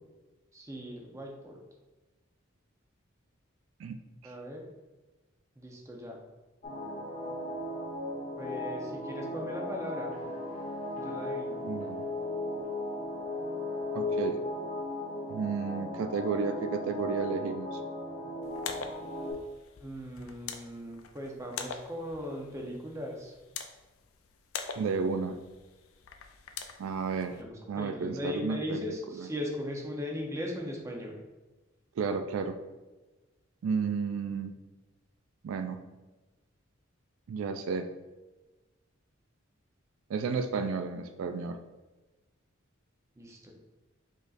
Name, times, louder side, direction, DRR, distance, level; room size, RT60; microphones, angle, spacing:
voice 1, 0.5-1.6 4.2-4.6 5.6-6.2 8.4-10.2 10.9-11.6 19.8-23.4 27.4-31.2 43.2-43.5, left 1 dB, 15° right, 0 dB, 0.7 m, -38 dB
sound 1, 6.6-19.3, left 1 dB, 35° left, 1.1 m, -36 dB
voice 2, 11.6-12.1 13.9-14.4 15.3-17.8 24.8-25.4 26.8-27.4 27.7-29.3 32.0-32.6 33.6-34.5 35.4-35.8 37.3-37.9 40.1-41.6, right 5 dB, 75° right, 7 dB, 0.3 m, -32 dB
sound 2, 18.4-27.4, left 6 dB, 90° left, 0.5 m, -44 dB
5.1 x 3.9 x 2.5 m, 1.2 s
head